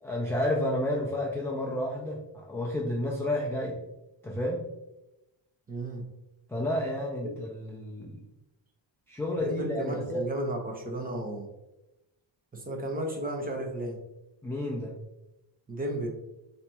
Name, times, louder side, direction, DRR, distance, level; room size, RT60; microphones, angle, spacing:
voice 1, 0.0-3.8 4.2-4.6 6.5-8.2 9.1-10.2 14.4-15.0, left 1 dB, 5° left, -3 dB, 0.3 m, -31 dB
voice 2, 5.7-6.1 7.2-7.4 9.4-11.5 12.5-14.0 15.7-16.1, right 1 dB, 20° right, 1 dB, 0.7 m, -33 dB
5.7 x 2.9 x 2.3 m, 0.92 s
cardioid pair, 150°, 45 cm